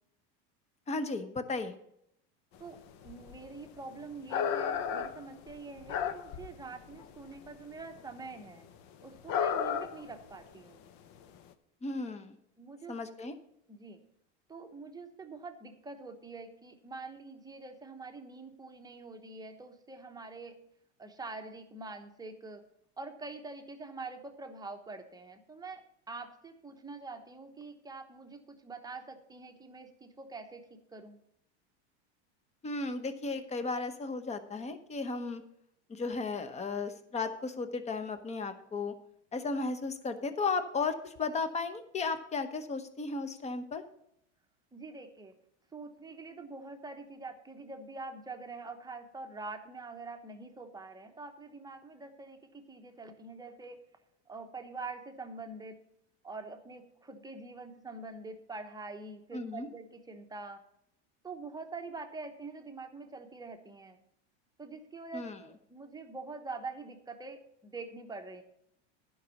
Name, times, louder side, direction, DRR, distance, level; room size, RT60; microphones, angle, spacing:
voice 1, 0.9-1.8 11.8-12.4 12.9-13.3 32.6-35.4 35.9-38.9 39.3-43.8 59.3-59.7 65.1-65.4, left 4 dB, 20° left, 10 dB, 0.9 m, -35 dB
sound 1, 2.8-2.9 3.0-3.7 4.1-6.6 6.9-7.6 8.0-8.1 8.4-8.5 9.3-10.1 10.5-10.6 11.2-11.3, left 7 dB, 50° left, 0.8 m, -33 dB
voice 2, 3.0-8.7 9.0-10.8 12.6-13.0 13.7-14.0 14.5-20.5 21.0-22.6 23.0-31.2 44.7-45.3 45.7-53.8 54.3-55.8 56.2-60.6 61.2-64.0 64.6-68.4, right 3 dB, 10° right, 5 dB, 0.9 m, -45 dB
11.0 x 5.4 x 7.0 m, 0.74 s
supercardioid pair, 130°, 34 cm